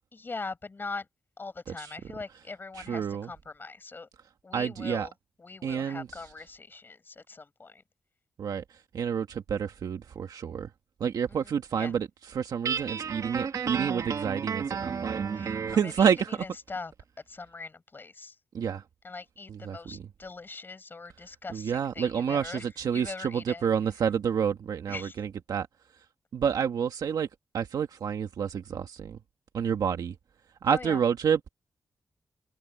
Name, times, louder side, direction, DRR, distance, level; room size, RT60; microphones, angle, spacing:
voice 1, 0.1-1.1 1.4-4.1 4.4-5.1 5.4-7.8 11.3-11.9 15.3-16.9 17.3-18.4 19.0-22.6 22.9-23.7 24.9-25.2 30.7-31.0, left 3 dB, 30° left, 7.3 m, -41 dB
voice 2, 2.8-3.3 4.5-5.1 5.6-6.1 8.4-10.7 11.0-15.3 15.7-16.4 18.5-18.8 19.5-20.1 21.5-25.7 26.3-27.3 27.5-29.2 29.5-30.2 30.6-31.5, right 7 dB, 80° right, 1.8 m, -29 dB
Guitar, 12.6-15.9, right 6 dB, 60° right, 2.5 m, -32 dB
wide cardioid pair, 125°, 7 cm